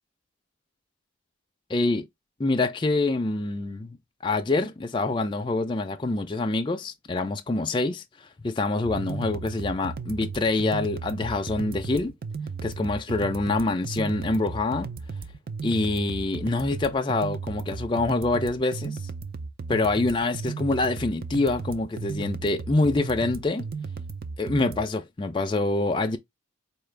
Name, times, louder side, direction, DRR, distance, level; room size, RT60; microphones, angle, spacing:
voice 1, 1.7-2.1 2.4-4.0 4.2-8.0 8.4-12.1 12.6-14.9 15.6-19.0 19.7-23.7 24.4-26.2, left 2 dB, 25° left, 0.4 m, -26 dB
sound 1, 8.8-24.8, right 4 dB, 45° right, 0.4 m, -35 dB
4.3 x 2.4 x 3.2 m
head